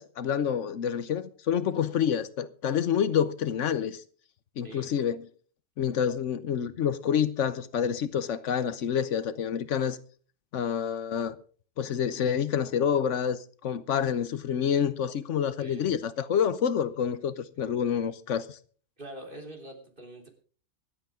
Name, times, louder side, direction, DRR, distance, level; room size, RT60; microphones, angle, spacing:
voice 1, 0.0-4.0 4.6-5.2 5.8-10.0 10.5-11.4 11.8-18.6, left 8 dB, 75° left, 1.1 m, -28 dB
voice 2, 15.6-15.9 19.0-20.3, right 1 dB, 45° right, 3.7 m, -44 dB
24.5 x 8.5 x 3.6 m
omnidirectional pair, 1.3 m